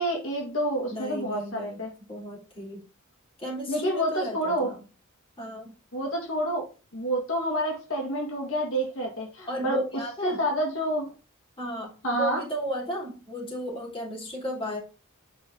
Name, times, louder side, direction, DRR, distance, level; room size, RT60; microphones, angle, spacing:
voice 1, 0.0-1.9 3.7-4.7 5.9-6.6 6.9-9.8 10.2-11.1 12.0-12.4, equal, 65° left, 0 dB, 2.0 m, -28 dB
voice 2, 0.9-2.8 3.4-4.8 5.4-5.7 9.5-10.4 11.6-14.8, equal, 25° left, -3 dB, 3.4 m, -34 dB
8.7 x 5.2 x 3.9 m, 0.33 s
head